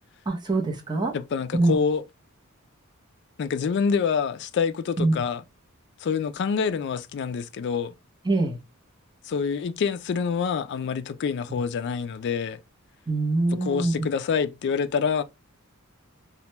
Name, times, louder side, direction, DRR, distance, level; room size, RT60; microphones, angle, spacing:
voice 1, 0.3-1.1 1.5-1.7 5.0-5.1 8.2-8.6 11.5-11.6 13.1-13.9, right 2 dB, 20° right, 0.6 m, -24 dB
voice 2, 1.1-2.0 3.4-5.4 6.0-7.9 9.3-12.6 13.5-15.2, left 6 dB, 55° left, 0.3 m, -26 dB
2.9 x 2.2 x 3.1 m
head